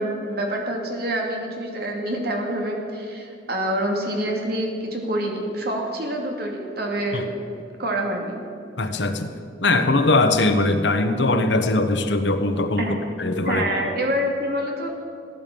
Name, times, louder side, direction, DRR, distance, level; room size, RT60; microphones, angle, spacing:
voice 1, 0.0-7.4 7.7-8.4 12.8-13.0 13.5-14.9, right 1 dB, 60° right, 1 dB, 2.4 m, -26 dB
voice 2, 8.8-9.3 9.6-12.8 13.2-13.6, left 2 dB, 80° left, 8 dB, 1.2 m, -20 dB
15.0 x 10.5 x 7.0 m, 2.4 s
head